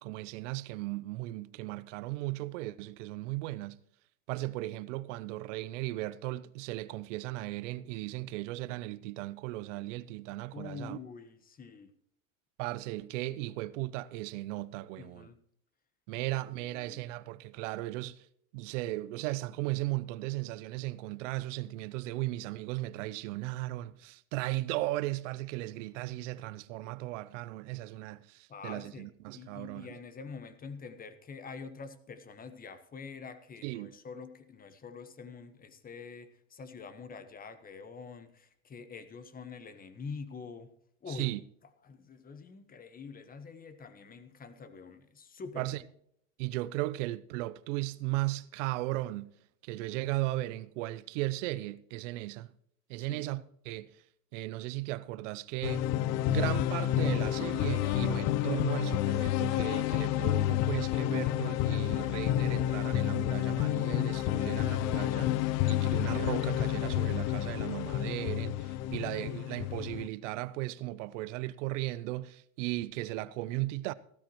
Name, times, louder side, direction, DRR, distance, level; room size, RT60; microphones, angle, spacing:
voice 1, 0.0-3.8 4.3-11.0 12.6-15.3 16.1-18.2 18.5-29.9 33.6-33.9 41.1-41.4 45.6-45.8 46.4-49.3 49.6-52.5 52.9-53.9 54.3-55.9 56.3-65.3 65.7-73.9, right 18 dB, 65° right, 0.8 m, -36 dB
voice 2, 10.5-11.9 15.0-15.4 16.2-16.3 16.6-17.1 28.5-29.1 29.3-40.7 41.0-41.3 41.8-45.8 53.0-53.4 68.9-69.1, left 5 dB, 20° left, 1.3 m, -46 dB
sound 1, 55.6-70.1, left 13 dB, 40° left, 0.5 m, -30 dB
15.5 x 13.0 x 3.1 m
hypercardioid pair, 110°, 40 cm